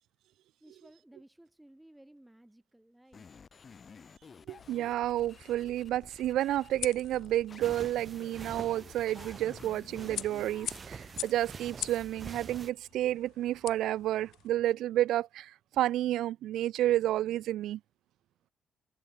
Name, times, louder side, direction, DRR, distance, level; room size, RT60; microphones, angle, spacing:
voice 1, 0.6-3.3, right 1 dB, 10° right, 6.4 m, -57 dB
sound 1, 3.1-11.2, left 5 dB, 40° left, 2.5 m, -53 dB
voice 2, 4.5-15.5 15.8-17.8, right 13 dB, 85° right, 0.6 m, -30 dB
sound 2, 4.6-14.5, left 14 dB, 85° left, 1.2 m, -45 dB
sound 3, 7.6-12.7, right 5 dB, 40° right, 2.7 m, -46 dB
cardioid pair, 90°, 0 cm